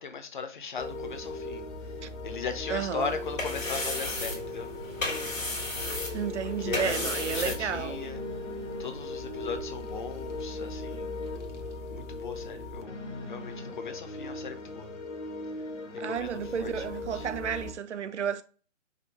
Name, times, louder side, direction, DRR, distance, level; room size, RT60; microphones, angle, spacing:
voice 1, 0.0-1.7 2.2-4.7 6.6-8.2 8.8-11.1 11.9-14.9 16.0-17.3, left 5 dB, 40° left, 0.6 m, -38 dB
sound 1, 0.8-17.7, left 2 dB, 65° left, 1.0 m, -38 dB
voice 2, 2.7-3.1 6.1-8.0 16.0-18.4, right 8 dB, 65° right, 0.5 m, -32 dB
sound 2, 3.0-8.1, left 2 dB, 85° left, 1.5 m, -35 dB
5.0 x 2.2 x 3.8 m
figure-of-eight pair, 135°, 38 cm